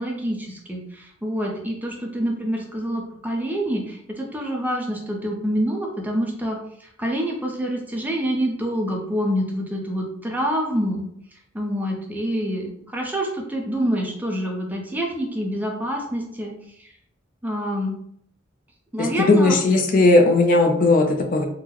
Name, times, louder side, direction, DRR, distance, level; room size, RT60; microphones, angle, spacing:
voice 1, 0.0-11.1 11.5-16.5 16.8-16.9 17.4-18.0 18.9-19.5, equal, 10° right, 0 dB, 0.5 m, -26 dB
voice 2, 19.0-21.4, left 2 dB, 45° left, 3 dB, 0.4 m, -17 dB
3.8 x 2.1 x 2.9 m, 0.69 s
head